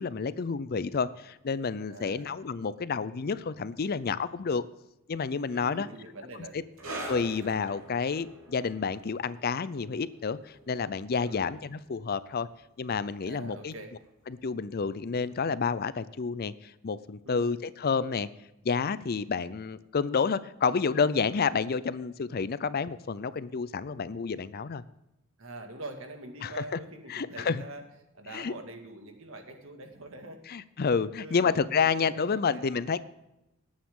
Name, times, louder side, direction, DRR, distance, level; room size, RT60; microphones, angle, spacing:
voice 1, 0.0-4.6 5.1-5.9 7.1-12.5 12.8-13.7 14.3-18.3 18.6-24.8 26.4-26.6 27.1-27.6 28.3-28.5 30.5-33.0, left 5 dB, 45° left, 16 dB, 0.5 m, -29 dB
voice 2, 1.9-2.3 5.5-6.6 11.2-11.5 13.3-14.0 17.3-17.5 25.4-27.8 28.1-30.5 31.2-32.6, right 2 dB, 65° right, 4 dB, 2.0 m, -44 dB
sound 1, 6.8-13.8 14.0-14.3 15.0-15.1, right 1 dB, 85° right, 3.2 m, -45 dB
18.5 x 8.8 x 3.7 m, 0.91 s
head